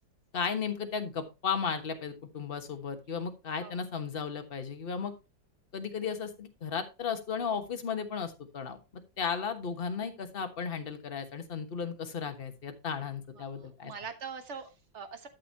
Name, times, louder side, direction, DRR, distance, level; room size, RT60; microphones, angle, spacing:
voice 1, 0.3-5.1 5.7-8.8 9.2-13.9, left 6 dB, 35° left, 7 dB, 1.3 m, -35 dB
voice 2, 13.4-15.3, right 6 dB, 40° right, 9 dB, 1.4 m, -43 dB
12.5 x 7.0 x 2.9 m, 0.27 s
omnidirectional pair, 2.1 m